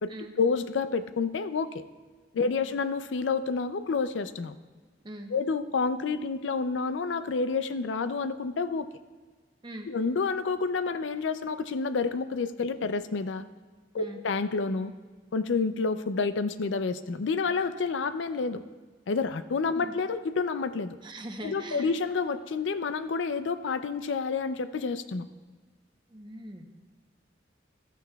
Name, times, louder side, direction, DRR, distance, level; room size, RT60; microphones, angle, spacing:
voice 1, 0.0-1.8 2.3-4.6 5.3-8.9 9.9-13.4 13.9-14.9 15.3-18.6 19.1-21.0 21.4-25.3, left 4 dB, 80° left, 12 dB, 0.4 m, -29 dB
voice 2, 21.0-21.9 26.1-26.6, right 1 dB, 25° right, 4 dB, 0.8 m, -41 dB
13.5 x 12.0 x 2.3 m, 1.4 s
head